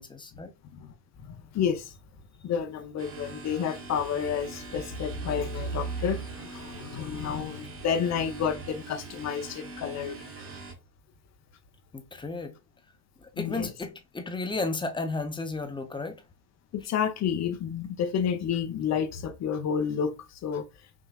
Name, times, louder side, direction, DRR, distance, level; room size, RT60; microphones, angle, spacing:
voice 1, 0.0-0.5 11.9-12.5 13.2-16.2, left 3 dB, 10° left, 0.6 m, -33 dB
voice 2, 0.7-1.9 2.4-10.3 13.4-13.7 16.7-20.6, left 7 dB, 35° left, 0.9 m, -30 dB
sound 1, 3.0-10.7, right 4 dB, 25° right, 1.2 m, -43 dB
5.8 x 2.9 x 2.4 m
hypercardioid pair, 90°, 50 cm